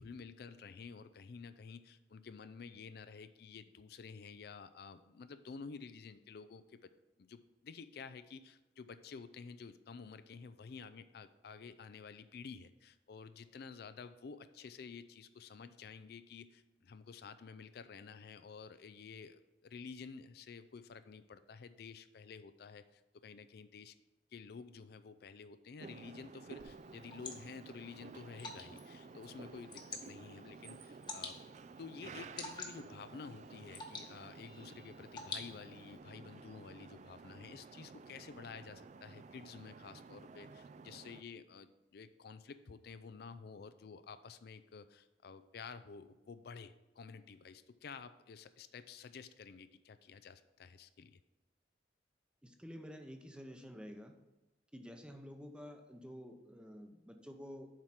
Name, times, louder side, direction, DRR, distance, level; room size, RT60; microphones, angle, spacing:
voice 1, 0.0-6.9 7.2-24.0 24.3-31.4 31.8-51.2, left 5 dB, 60° left, 12 dB, 0.4 m, -51 dB
sound 1, 25.8-41.2, right 4 dB, 40° right, 0.3 m, -53 dB
Water / Drip, 26.6-36.0, left 3 dB, 25° left, 1.0 m, -50 dB
voice 2, 52.4-54.1 54.7-57.7, equal, 5° right, 5 dB, 0.7 m, -50 dB
7.4 x 4.8 x 5.7 m, 1.0 s
head